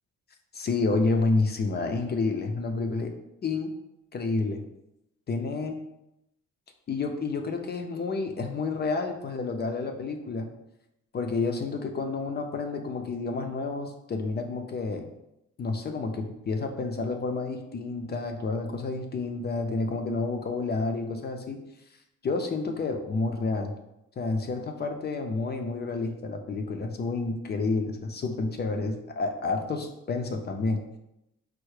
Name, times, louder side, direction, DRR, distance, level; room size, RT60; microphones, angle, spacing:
voice 1, 0.5-3.1 3.4-3.7 4.1-4.6 5.3-5.7 6.9-10.5 11.1-15.1 15.6-21.6 22.2-23.7 24.2-30.8, left 3 dB, 35° left, 4 dB, 0.4 m, -29 dB
4.5 x 2.0 x 3.1 m, 0.85 s
cardioid pair, 90°, 30 cm